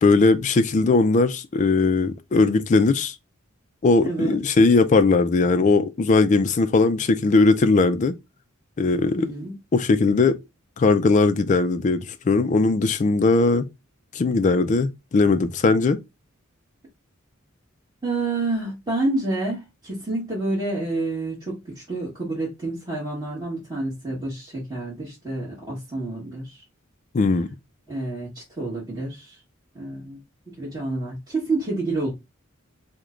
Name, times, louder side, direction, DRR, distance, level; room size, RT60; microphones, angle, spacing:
voice 1, 0.0-3.1 3.8-8.1 8.8-9.3 9.7-10.4 10.8-13.7 14.1-16.0 27.1-27.5, left 3 dB, 35° left, 0.4 m, -19 dB
voice 2, 4.0-4.4 9.2-9.5 18.0-26.6 27.9-29.4 29.7-30.2 30.6-32.1, right 2 dB, 20° right, 1.4 m, -28 dB
3.1 x 2.2 x 3.7 m
head